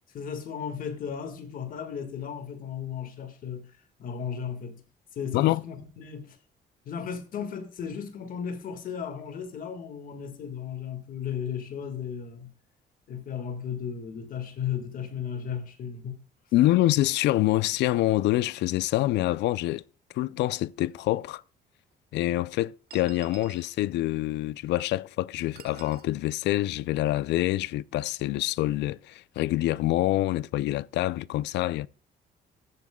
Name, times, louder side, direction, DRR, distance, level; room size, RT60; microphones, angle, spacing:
voice 1, 0.1-3.7 4.0-4.8 5.1-6.4 6.8-12.5 13.1-16.2, left 7 dB, 55° left, 1.7 m, -35 dB
voice 2, 16.5-19.8 20.1-21.4 22.1-31.9, left 16 dB, 85° left, 0.4 m, -26 dB
sound 1, 20.9-21.0 21.9-22.0 22.9-23.8 25.6-26.1, right 10 dB, 60° right, 1.1 m, -49 dB
14.5 x 8.6 x 2.2 m
cardioid pair, 170°, 18 cm